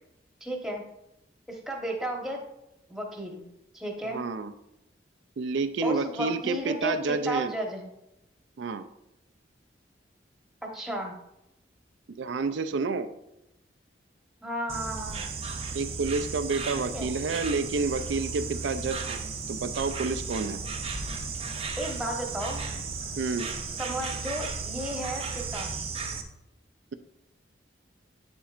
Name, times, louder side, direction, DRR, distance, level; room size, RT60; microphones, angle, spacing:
voice 1, 0.4-0.8 1.5-2.4 2.9-3.5 3.7-4.2 5.8-7.9 10.7-11.2 14.4-15.3 16.7-17.1 21.8-22.6 23.8-25.7, right 1 dB, ahead, 0 dB, 1.1 m, -33 dB
voice 2, 4.1-4.5 5.4-7.5 8.6-8.9 12.2-13.1 15.7-19.2 19.5-20.6 23.2-23.5, right 4 dB, 80° right, 10 dB, 0.4 m, -29 dB
Insect, 14.7-26.2, right 4 dB, 30° right, 0.6 m, -35 dB
8.3 x 7.2 x 2.5 m, 0.88 s
head